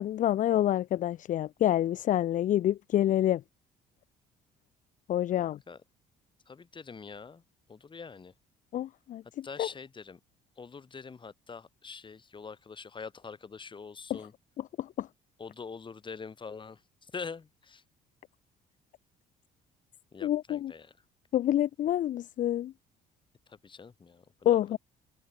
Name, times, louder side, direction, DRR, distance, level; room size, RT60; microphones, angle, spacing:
voice 1, 0.0-3.4 5.1-5.6 8.7-9.7 14.1-14.2 14.8-15.1 20.2-20.7 21.3-22.7 24.4-24.8, left 12 dB, 50° left, 0.5 m, -27 dB
voice 2, 5.3-5.8 6.5-7.4 7.7-8.3 9.4-10.2 10.6-14.3 15.4-17.8 20.1-21.0 23.5-24.8, left 5 dB, 30° left, 4.6 m, -44 dB
cardioid pair, 110°, 17 cm